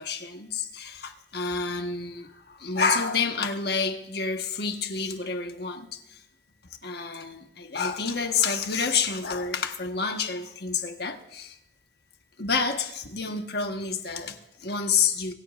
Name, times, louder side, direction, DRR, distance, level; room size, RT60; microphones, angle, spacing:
voice 1, 0.0-6.2 6.8-11.6 12.4-15.3, left 5 dB, 60° left, 1.4 m, -29 dB
24.5 x 14.5 x 2.6 m
head